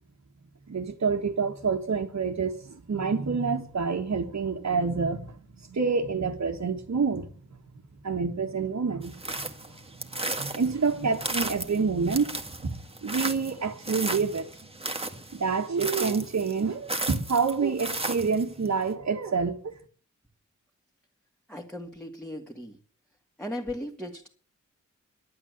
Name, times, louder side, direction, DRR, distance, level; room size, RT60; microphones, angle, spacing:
voice 1, 0.7-7.3 8.0-9.2 10.3-14.5 15.3-19.8, right 5 dB, 60° right, 1.7 m, -28 dB
sound 1, 9.0-18.7, right 2 dB, 20° right, 2.0 m, -35 dB
voice 2, 21.5-22.8 23.4-24.3, left 1 dB, 5° left, 2.3 m, -37 dB
11.5 x 8.8 x 8.1 m
cardioid pair, 60°, 31 cm